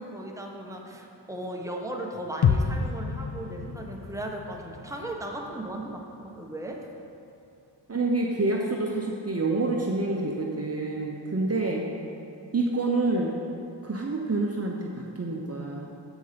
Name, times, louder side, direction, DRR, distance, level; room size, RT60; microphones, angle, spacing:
voice 1, 0.0-6.8, right 1 dB, 5° right, 0 dB, 1.1 m, -36 dB
sound 1, 2.4-6.4 6.7-6.8, left 6 dB, 60° left, 0.7 m, -30 dB
voice 2, 7.9-11.9 12.5-13.4 13.8-15.9, right 2 dB, 35° right, -1 dB, 0.9 m, -27 dB
7.9 x 6.2 x 5.2 m, 2.8 s
cardioid pair, 50°, 44 cm